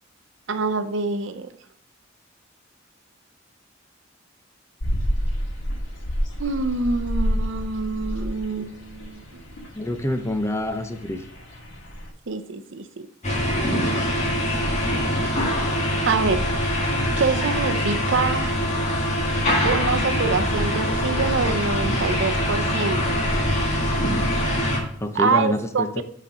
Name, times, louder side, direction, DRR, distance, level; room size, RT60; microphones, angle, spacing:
voice 1, 0.5-1.5 6.4-9.4 12.3-13.1 15.2-15.4 16.1-16.5 17.2-18.6 19.6-23.1 25.1-26.0, right 4 dB, 70° right, 9 dB, 0.6 m, -25 dB
sound 1, 4.8-12.1, equal, 70° left, 2.1 m, -29 dB
voice 2, 9.8-11.2 25.0-26.0, left 1 dB, 15° left, 7 dB, 0.7 m, -26 dB
sound 2, 13.2-24.8, equal, 35° left, 1.8 m, -23 dB
9.7 x 4.3 x 5.0 m, 0.66 s
head